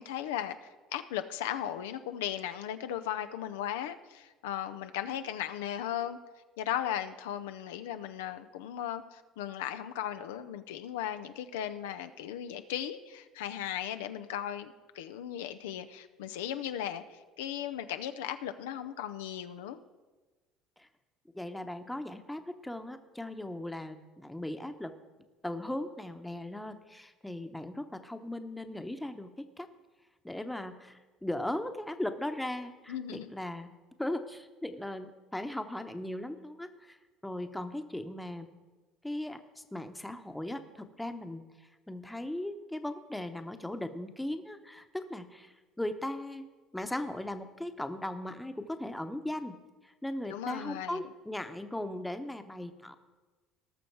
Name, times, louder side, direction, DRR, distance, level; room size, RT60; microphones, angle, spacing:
voice 1, 0.0-6.2 6.6-19.8 32.9-33.3 50.3-51.1, left 10 dB, 90° left, 9 dB, 0.5 m, -37 dB
voice 2, 21.3-24.9 25.4-29.7 30.2-33.7 34.0-37.0 37.2-38.5 39.0-41.4 41.9-46.5 46.7-49.6 49.8-53.0, left 1 dB, 5° left, 8 dB, 0.9 m, -38 dB
18.5 x 6.3 x 4.6 m, 1.3 s
supercardioid pair, 85°, 0 cm